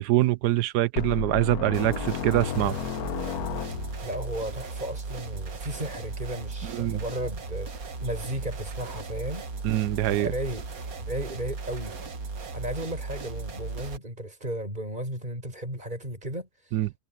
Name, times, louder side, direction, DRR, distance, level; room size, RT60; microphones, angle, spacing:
voice 1, 0.0-2.8 6.6-7.0 9.6-10.3 16.7-16.9, right 15 dB, 80° right, 1.2 m, -24 dB
sound 1, 1.0-4.2, left 9 dB, 70° left, 1.4 m, -33 dB
sound 2, 1.7-14.0, right 4 dB, 60° right, 2.0 m, -37 dB
voice 2, 4.0-9.5 10.1-10.6 11.1-11.9 12.5-16.8, right 1 dB, 25° right, 8.1 m, -34 dB
omnidirectional pair, 1.7 m